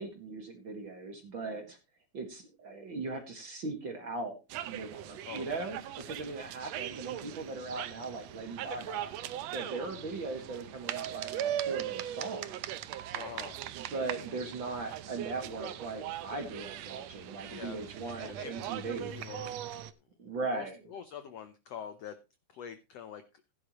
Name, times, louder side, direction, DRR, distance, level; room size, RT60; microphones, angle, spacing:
voice 1, 0.0-1.8 2.1-4.4 4.6-9.1 9.5-12.8 13.7-19.1 20.2-20.8, right 3 dB, 40° right, 5 dB, 2.1 m, -39 dB
sound 1, 4.5-19.9, right 11 dB, 85° right, 1.5 m, -40 dB
voice 2, 13.1-13.7 17.5-19.6 20.5-22.1 22.5-23.2, left 8 dB, 75° left, 10 dB, 1.5 m, -45 dB
16.0 x 10.0 x 3.1 m, 0.27 s
omnidirectional pair, 4.0 m